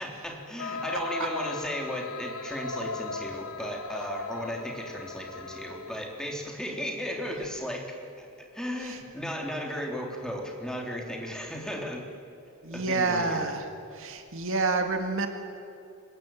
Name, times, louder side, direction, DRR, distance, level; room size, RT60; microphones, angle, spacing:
voice 1, 0.0-12.0 12.7-13.5, equal, 5° left, 0 dB, 3.7 m, -35 dB
sound 1, 0.6-6.2, left 3 dB, 75° left, 1.1 m, -37 dB
voice 2, 12.6-13.7 13.9-15.3, right 3 dB, 65° right, 5 dB, 2.2 m, -28 dB
25.0 x 22.0 x 9.1 m, 2.5 s
head